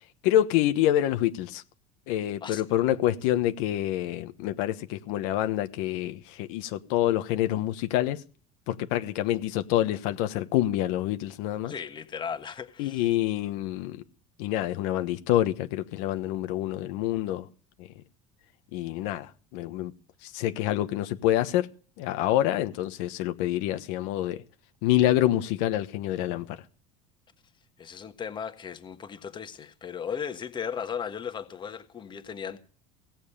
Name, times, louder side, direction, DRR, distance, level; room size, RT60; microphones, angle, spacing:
voice 1, 0.2-1.6 2.1-8.2 8.7-11.7 12.8-14.0 14.4-17.5 17.8-17.9 18.7-19.9 20.2-21.7 22.0-24.4 24.8-26.6, left 13 dB, 75° left, 1.2 m, -27 dB
voice 2, 11.7-13.1 27.8-32.6, left 7 dB, 25° left, 1.4 m, -36 dB
17.5 x 7.3 x 8.6 m
cardioid pair, 135°, 18 cm